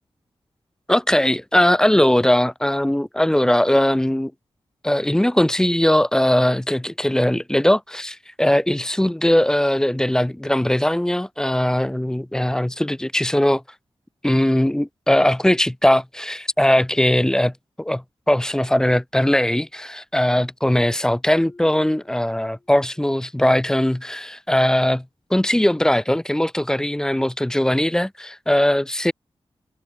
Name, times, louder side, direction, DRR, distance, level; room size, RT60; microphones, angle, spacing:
voice 1, 0.9-4.3 4.8-13.6 14.2-25.0 25.3-29.1, left 1 dB, 5° left, 0.4 m, -20 dB
Marimba xylophone, 21.3-23.1, left 2 dB, 20° left, 1.6 m, -49 dB
wide cardioid pair, 155°, 10 cm